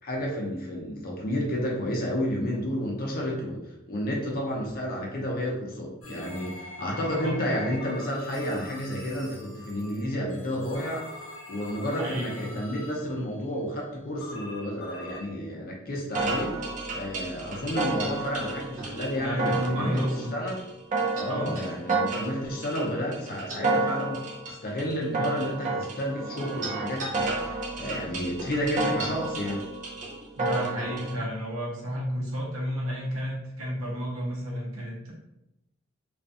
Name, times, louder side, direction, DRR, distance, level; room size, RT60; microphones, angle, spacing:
voice 1, 0.0-3.6 3.9-11.1 11.5-20.0 20.3-20.5 21.1-24.2 24.5-29.6, equal, 45° left, -2 dB, 0.6 m, -31 dB
sound 1, 6.0-13.2 14.2-15.3, left 1 dB, 85° left, 0.6 m, -43 dB
voice 2, 7.2-7.7 8.2-8.6 12.0-12.6 19.1-20.4 21.3-21.6 27.3-27.7 30.4-35.1, equal, 80° right, -3 dB, 0.8 m, -32 dB
sound 2, 16.1-31.1, right 2 dB, 40° right, 0.4 m, -31 dB
2.4 x 2.2 x 2.6 m, 0.89 s
head